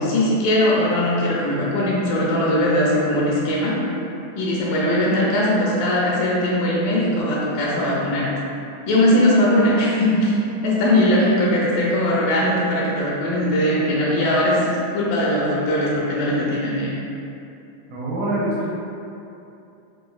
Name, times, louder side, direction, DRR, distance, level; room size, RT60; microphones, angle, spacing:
voice 1, 0.0-3.8 4.4-8.3 8.9-16.9, left 1 dB, 80° left, -5 dB, 2.2 m, -20 dB
voice 2, 17.9-18.8, right 1 dB, 75° right, -8 dB, 2.1 m, -25 dB
6.2 x 2.5 x 2.3 m, 2.8 s
omnidirectional pair, 4.0 m